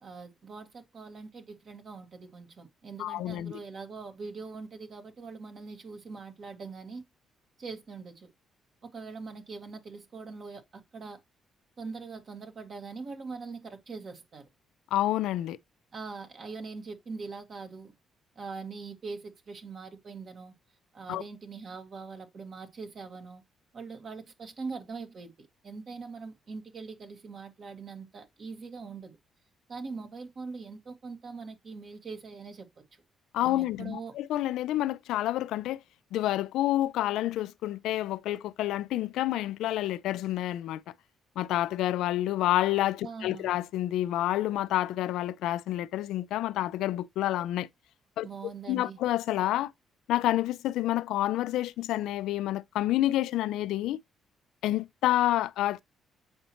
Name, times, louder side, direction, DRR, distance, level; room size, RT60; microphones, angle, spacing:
voice 1, 0.0-7.0 7.6-8.3 8.8-11.2 11.8-14.5 15.9-17.9 18.4-20.5 20.9-23.4 23.7-29.1 29.7-32.7 33.4-34.1 43.0-43.5 48.2-49.0, right 4 dB, 50° right, 1.6 m, -42 dB
voice 2, 3.0-3.5 14.9-15.6 21.1-21.2 33.3-35.8 36.1-40.8 41.4-47.7 48.2-48.3 48.7-49.7 50.1-54.0 54.6-55.8, left 14 dB, 85° left, 0.3 m, -28 dB
7.8 x 4.2 x 2.9 m
cardioid pair, 90°, 0 cm